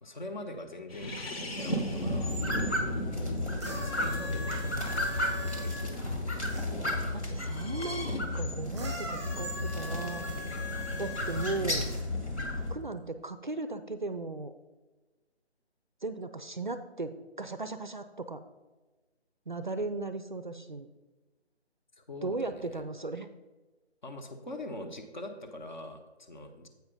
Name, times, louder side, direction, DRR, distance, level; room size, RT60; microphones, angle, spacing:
voice 1, 0.0-2.4 3.8-4.7 5.0-6.0 22.0-22.8 24.0-26.7, left 1 dB, 45° left, 5 dB, 0.9 m, -43 dB
sound 1, 0.9-6.6 7.4-8.2, equal, 60° left, 1.2 m, -37 dB
sound 2, 1.9-12.7, left 1 dB, 85° left, 2.0 m, -33 dB
voice 2, 3.1-3.6 7.1-10.3 11.0-11.9 12.7-14.5 16.0-18.4 19.5-20.9 22.2-23.3, right 3 dB, 45° right, 10 dB, 0.4 m, -37 dB
sound 3, 3.6-6.6 8.7-12.0 12.9-13.0, left 1 dB, ahead, 1.1 m, -41 dB
8.0 x 4.9 x 5.1 m, 1.2 s
figure-of-eight pair, 155°, 34 cm